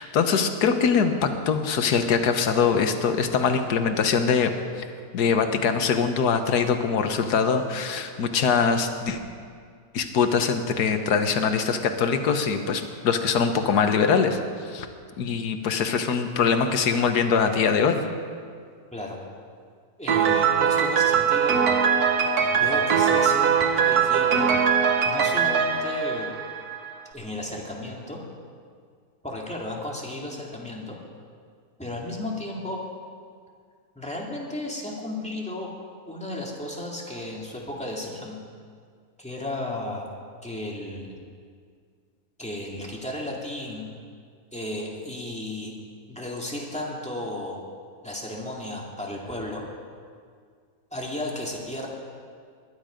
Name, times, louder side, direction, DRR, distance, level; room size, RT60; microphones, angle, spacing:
voice 1, 0.0-4.5 4.8-4.9 5.1-9.2 9.9-14.4 14.6-14.9 15.2-18.0, left 6 dB, 85° left, 7 dB, 1.6 m, -23 dB
voice 2, 20.0-21.7 22.5-24.5 25.0-26.3 27.1-28.2 29.2-31.0 31.8-32.8 34.0-35.7 36.1-38.4 39.2-40.1 40.4-41.2 42.4-43.9 44.5-45.7 46.1-47.6 48.0-49.6 50.9-51.9, left 1 dB, 5° left, -2 dB, 2.1 m, -34 dB
Piano, 20.1-26.9, right 7 dB, 75° right, 1.5 m, -21 dB
21.5 x 10.5 x 5.1 m, 2.1 s
omnidirectional pair, 1.7 m